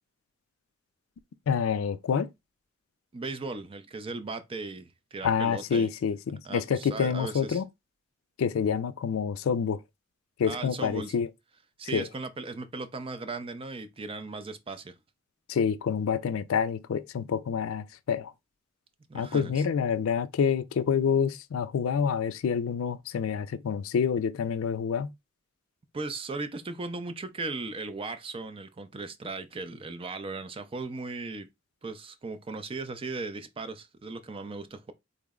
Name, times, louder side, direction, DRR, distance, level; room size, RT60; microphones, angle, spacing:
voice 1, 1.5-2.3 5.2-7.7 8.4-9.8 10.4-11.3 11.9-12.1 15.5-18.3 19.1-25.1, left 6 dB, 90° left, 0.4 m, -27 dB
voice 2, 3.1-5.9 6.4-7.6 10.4-11.1 11.8-14.9 19.1-19.5 25.9-31.5 31.8-34.9, right 3 dB, 25° right, 0.4 m, -37 dB
3.7 x 2.0 x 3.5 m
head